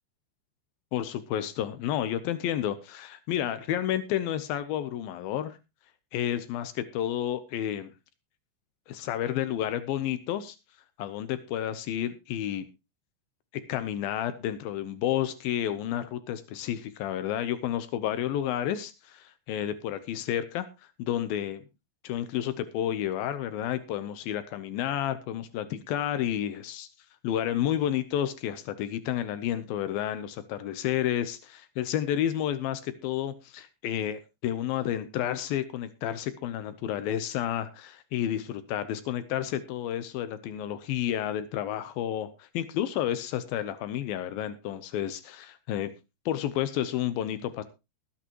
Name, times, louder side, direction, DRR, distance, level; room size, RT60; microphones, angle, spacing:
voice 1, 0.9-5.6 6.1-7.9 8.9-10.6 11.0-12.6 13.7-20.7 21.0-21.6 22.0-26.9 27.2-45.9 46.3-47.6, left 11 dB, 85° left, 12 dB, 2.1 m, -31 dB
20.5 x 8.8 x 3.0 m, 0.26 s
omnidirectional pair, 5.3 m